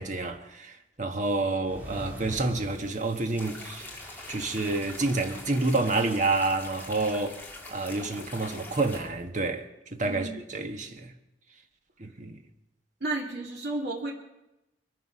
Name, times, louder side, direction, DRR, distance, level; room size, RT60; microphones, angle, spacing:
voice 1, 0.0-3.9 4.3-7.4 7.7-9.7 9.9-11.1 12.0-12.4, right 3 dB, 45° right, 1.3 m, -29 dB
sound 1, 1.6-6.5, equal, 10° right, 2.6 m, -45 dB
sound 2, 3.4-9.0, left 2 dB, 10° left, 2.3 m, -43 dB
voice 2, 10.0-10.4 13.0-14.1, right 2 dB, 65° right, 2.9 m, -32 dB
22.5 x 9.7 x 6.3 m
head